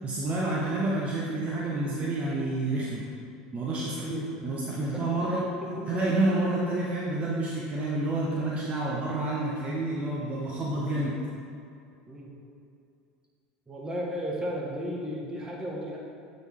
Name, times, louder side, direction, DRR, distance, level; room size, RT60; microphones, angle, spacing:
voice 1, 0.0-3.0 3.5-5.4 5.9-11.2, right 2 dB, 35° right, -5 dB, 0.9 m, -29 dB
voice 2, 4.8-6.0 10.7-10.8 12.1-12.3 13.7-16.0, equal, 15° right, -3 dB, 1.4 m, -35 dB
8.0 x 4.0 x 3.7 m, 2.5 s
hypercardioid pair, 90°, 4 cm